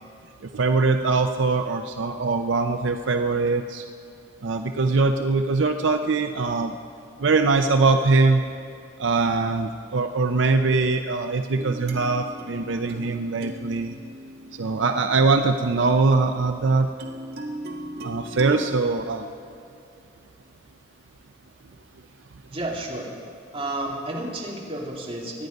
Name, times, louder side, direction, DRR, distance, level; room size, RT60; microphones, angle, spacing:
voice 1, 0.5-3.8 4.4-6.8 7.2-8.4 9.0-13.9 14.5-16.9 18.0-19.3, right 3 dB, 75° right, 6 dB, 0.6 m, -22 dB
sound 1, 11.5-15.8 17.0-18.7, right 1 dB, 55° right, 1.6 m, -37 dB
voice 2, 22.5-23.1 23.5-25.5, right 1 dB, 30° right, -3 dB, 2.5 m, -31 dB
24.5 x 9.4 x 5.2 m, 2.5 s
head